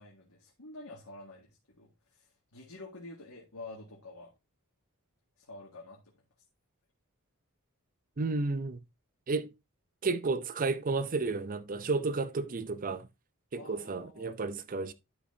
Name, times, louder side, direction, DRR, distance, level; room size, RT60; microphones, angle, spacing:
voice 1, 0.0-4.3 5.4-6.1 13.5-14.4, left 2 dB, 90° left, 1.9 m, -48 dB
voice 2, 8.2-8.8 9.3-9.5 10.0-13.1 13.5-14.9, right 3 dB, 40° right, 0.6 m, -32 dB
11.0 x 6.1 x 2.7 m
head